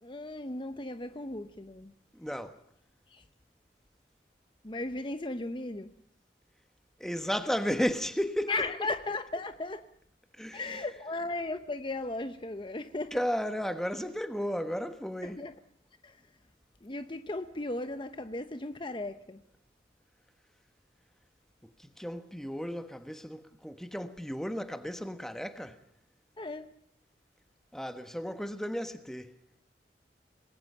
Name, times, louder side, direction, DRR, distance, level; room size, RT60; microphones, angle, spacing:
voice 1, 0.0-1.9 3.1-3.3 4.6-5.9 8.5-9.9 10.5-13.2 15.2-15.5 16.0-16.3 16.8-19.4 26.4-26.7, left 2 dB, 30° left, 0.9 m, -36 dB
voice 2, 2.1-2.6 7.0-8.5 10.3-10.8 13.1-15.4 21.6-25.8 27.7-29.3, equal, 5° left, 1.3 m, -34 dB
27.0 x 20.5 x 5.6 m
head